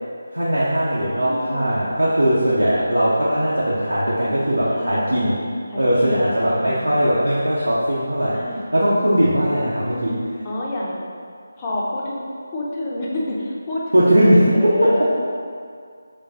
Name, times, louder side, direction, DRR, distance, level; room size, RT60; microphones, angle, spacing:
voice 1, 0.3-5.5 5.8-8.4 8.7-10.2 13.9-15.1, equal, 75° right, -8 dB, 0.7 m, -19 dB
voice 2, 1.2-1.8 4.7-5.2 5.7-7.1 8.3-8.6 9.8-11.0 11.6-12.2 12.5-15.1, left 1 dB, 20° left, -5 dB, 0.6 m, -29 dB
3.4 x 3.0 x 4.0 m, 2.2 s
figure-of-eight pair, 160°, 0 cm